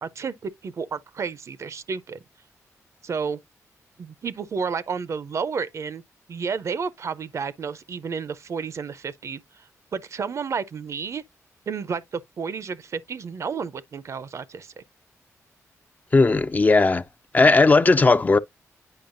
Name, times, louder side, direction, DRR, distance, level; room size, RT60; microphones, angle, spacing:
voice 1, 0.0-2.2 3.0-3.4 4.0-6.0 6.3-9.7 9.9-11.2 11.7-14.7, right 5 dB, 55° right, 0.5 m, -31 dB
voice 2, 16.1-17.0 17.3-18.4, left 3 dB, 30° left, 0.4 m, -16 dB
8.8 x 5.0 x 2.5 m
cardioid pair, 75°, 6 cm